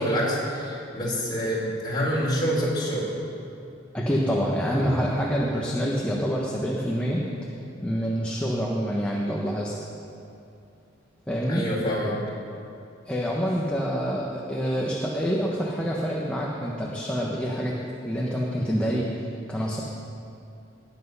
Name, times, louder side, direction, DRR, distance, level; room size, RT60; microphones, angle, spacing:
voice 1, 0.0-3.1 11.5-12.2, equal, 20° left, -5 dB, 4.0 m, -26 dB
voice 2, 3.9-7.3 7.8-9.7 11.3-11.6 13.1-19.8, equal, 5° left, -4 dB, 1.1 m, -27 dB
19.5 x 8.2 x 5.5 m, 2.6 s
head